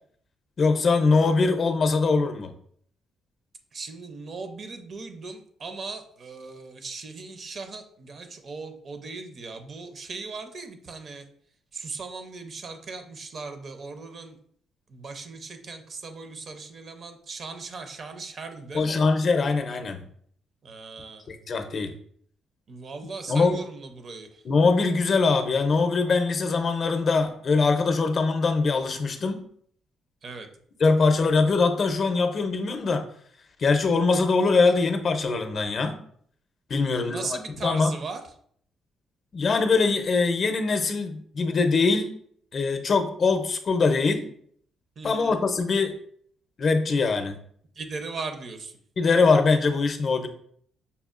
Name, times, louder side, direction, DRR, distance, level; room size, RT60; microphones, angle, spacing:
voice 1, 0.6-2.5 18.7-20.0 21.3-21.9 23.3-23.6 24.4-29.4 30.8-33.0 33.6-36.0 36.7-37.9 39.3-42.1 42.5-44.3 45.0-46.0 46.6-47.4 49.0-50.3, left 4 dB, 50° left, 7 dB, 0.5 m, -22 dB
voice 2, 3.7-11.2 11.7-14.4 14.9-19.1 20.6-21.3 22.7-24.4 30.2-30.5 36.8-38.2 45.0-45.4 47.7-48.8, right 4 dB, 50° right, 7 dB, 0.6 m, -38 dB
5.3 x 2.4 x 2.4 m, 0.62 s
cardioid pair, 90°, 0 cm